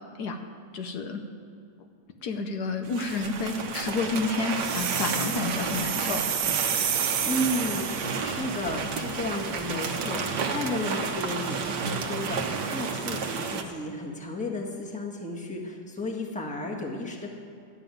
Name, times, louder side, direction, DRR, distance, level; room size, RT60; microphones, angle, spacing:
voice 1, 0.7-1.2 2.2-6.2, left 4 dB, 70° left, 5 dB, 1.4 m, -30 dB
sound 1, 2.8-13.6, right 5 dB, 90° right, 1.7 m, -31 dB
sound 2, 4.5-8.2, right 8 dB, 60° right, 1.2 m, -30 dB
voice 2, 6.9-17.3, left 1 dB, 5° left, 0 dB, 1.3 m, -33 dB
12.5 x 7.0 x 9.2 m, 2.5 s
omnidirectional pair, 1.8 m